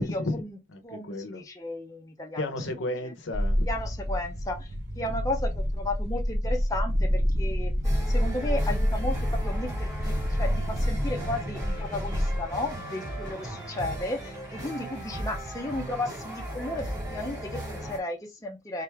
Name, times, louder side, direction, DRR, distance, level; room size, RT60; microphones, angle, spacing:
voice 1, 0.0-1.4 2.4-3.7 5.0-5.4, left 1 dB, 60° left, 0.8 m, -33 dB
voice 2, 0.8-2.4 3.0-3.1 3.6-7.7 8.1-18.8, left 2 dB, 15° left, 0.6 m, -34 dB
sound 1, 3.3-12.7, equal, 55° right, 1.5 m, -28 dB
sound 2, 7.8-18.0, equal, 15° right, 1.9 m, -37 dB
3.6 x 3.4 x 3.4 m
head